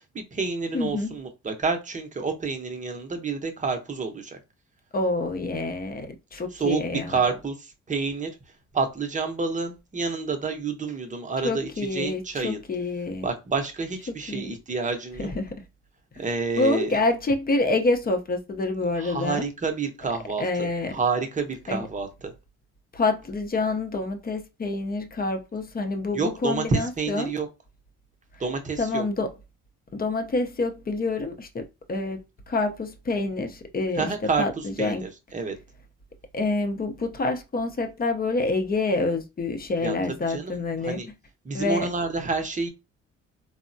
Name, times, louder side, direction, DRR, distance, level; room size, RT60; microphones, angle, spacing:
voice 1, 0.0-4.4 6.5-8.3 8.7-12.6 13.2-15.3 16.2-17.0 19.0-22.3 26.1-27.5 28.4-29.0 34.0-35.5 39.8-40.0 40.3-40.5 40.8-41.1 41.4-42.7, right 4 dB, 25° right, 0.7 m, -29 dB
voice 2, 0.7-1.1 4.9-7.2 11.4-13.3 14.3-14.5 15.2-15.5 16.2-16.3 16.6-19.4 20.4-21.0 21.7-21.9 22.9-27.3 28.8-29.3 29.9-34.1 34.4-35.0 36.3-41.0 41.5-41.9, left 3 dB, 30° left, 0.6 m, -27 dB
3.4 x 2.1 x 2.6 m
cardioid pair, 90°, 30 cm